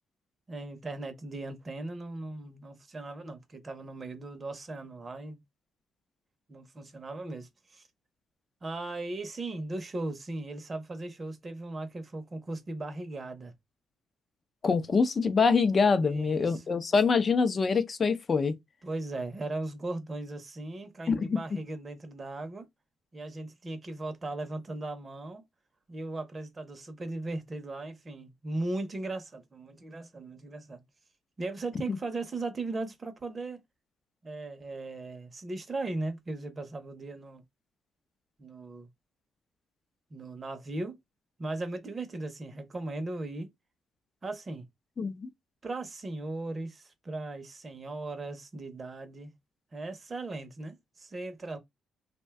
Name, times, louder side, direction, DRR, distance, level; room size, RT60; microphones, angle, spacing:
voice 1, 0.5-5.4 6.5-7.8 8.6-13.5 16.0-16.6 18.8-22.7 23.1-25.4 25.9-30.8 31.4-33.6 34.2-37.4 38.4-38.9 40.1-41.0 41.4-43.5 44.2-44.6 45.6-49.3 49.7-51.6, right 2 dB, 30° right, 0.6 m, -38 dB
voice 2, 14.6-18.5 21.1-21.4 31.9-32.0 45.0-45.3, left 5 dB, 40° left, 0.5 m, -25 dB
2.5 x 2.2 x 3.4 m
cardioid pair, 90°, 0 cm